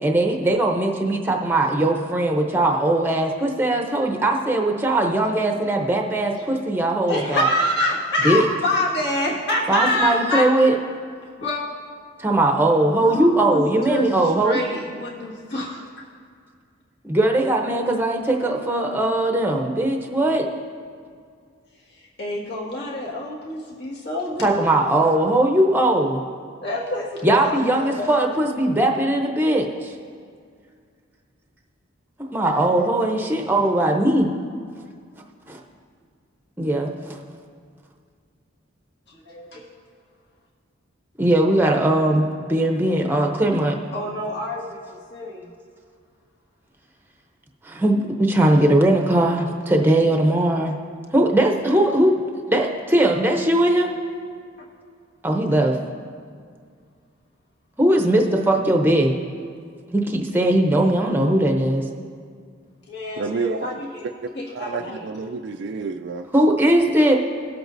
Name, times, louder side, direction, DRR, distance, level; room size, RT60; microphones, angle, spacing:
voice 1, 0.0-7.5 8.2-8.5 9.7-10.8 12.2-14.6 17.0-20.5 24.4-26.2 27.2-29.9 32.2-34.3 35.5-35.6 36.6-37.2 41.2-43.8 47.6-50.8 51.1-52.2 52.5-53.9 55.2-55.8 57.8-59.1 59.9-61.8 66.3-67.2, right 1 dB, 10° right, 2 dB, 0.7 m, -19 dB
voice 2, 7.1-10.4 11.4-11.6 12.9-14.1 14.4-15.8 22.2-24.7 26.6-27.4 27.7-28.1 39.1-39.6 43.9-45.5 54.6-54.7 62.9-64.1 64.3-65.1, left 1 dB, 55° left, -4 dB, 1.7 m, -26 dB
voice 3, 63.2-63.8 64.2-66.3, right 4 dB, 55° right, 5 dB, 0.3 m, -30 dB
18.5 x 7.8 x 2.6 m, 2.1 s
head